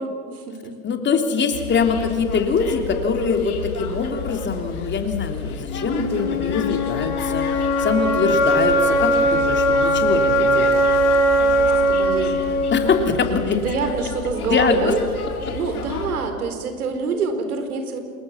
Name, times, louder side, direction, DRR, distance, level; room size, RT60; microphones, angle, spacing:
voice 1, 0.0-0.8 11.4-12.5 13.6-15.0 15.4-18.0, right 4 dB, 85° right, 7 dB, 4.3 m, -27 dB
voice 2, 0.8-10.8 12.7-13.6 14.5-14.9 15.5-15.6, left 5 dB, 25° left, 5 dB, 3.4 m, -23 dB
sound 1, 1.5-16.1, left 6 dB, 85° left, 3.9 m, -32 dB
sound 2, 5.7-13.6, right 1 dB, 55° left, 4.6 m, -20 dB
28.5 x 21.0 x 7.4 m, 2.1 s
hypercardioid pair, 105°, 43 cm